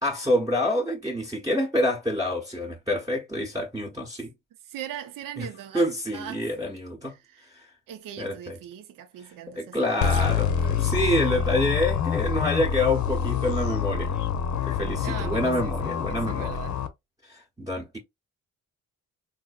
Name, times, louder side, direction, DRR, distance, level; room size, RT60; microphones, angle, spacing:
voice 1, 0.0-4.3 5.4-5.5 5.7-7.1 7.5-7.7 8.2-8.6 9.6-14.1 14.7-16.5 17.3-18.0, left 1 dB, 10° right, 1.0 m, -27 dB
voice 2, 4.6-5.8 6.1-6.5 7.1-7.5 7.9-10.2 15.0-16.8, right 10 dB, 75° right, 0.7 m, -40 dB
sound 1, 10.0-16.9, left 8 dB, 60° left, 0.7 m, -26 dB
3.9 x 2.7 x 2.3 m
cardioid pair, 100°, 33 cm